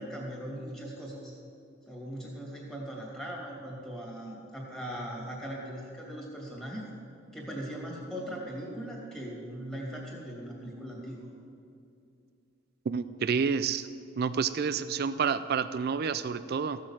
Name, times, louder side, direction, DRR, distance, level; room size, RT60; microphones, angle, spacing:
voice 1, 0.0-1.3 1.9-6.8 7.3-11.3, equal, 5° left, -3 dB, 2.4 m, -39 dB
voice 2, 12.9-13.9 14.2-16.8, right 6 dB, 50° right, 13 dB, 0.4 m, -29 dB
14.5 x 6.5 x 7.4 m, 2.5 s
head